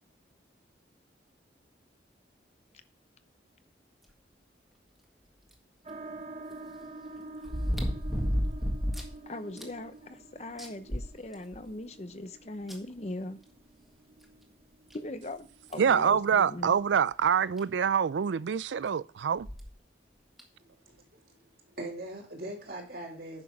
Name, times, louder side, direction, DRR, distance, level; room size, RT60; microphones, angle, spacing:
sound 1, 5.5-5.6 7.4-9.2 9.6-9.7 10.1-10.2 10.6-11.7 12.7-12.8 14.2-14.3 14.9-15.0 15.7-15.9 17.3-17.4 17.6-17.7 19.4-19.7 20.4-20.5, equal, ahead, 1.7 m, -31 dB
sound 2, 5.8-17.0, right 2 dB, 35° right, 0.8 m, -48 dB
voice 1, 9.3-13.4 14.9-16.8, left 1 dB, 35° left, 0.8 m, -40 dB
voice 2, 15.8-19.5, right 7 dB, 85° right, 0.4 m, -26 dB
voice 3, 20.6-23.4, right 1 dB, 55° right, 2.9 m, -42 dB
9.9 x 6.3 x 5.7 m
head